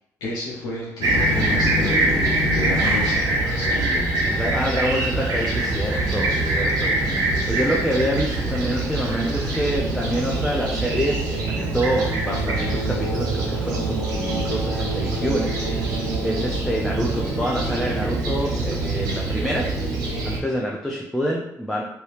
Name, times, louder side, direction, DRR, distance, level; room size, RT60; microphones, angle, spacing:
voice 1, 0.2-4.1, left 2 dB, 85° left, -5 dB, 0.7 m, -31 dB
Fixed-wing aircraft airplane, 1.0-20.4, right 2 dB, 80° right, 0.9 m, -24 dB
voice 2, 4.3-15.5 15.8-19.7 20.2-21.8, equal, 5° left, -2 dB, 0.5 m, -27 dB
2.8 x 2.8 x 3.2 m, 0.85 s
cardioid pair, 90°, 7 cm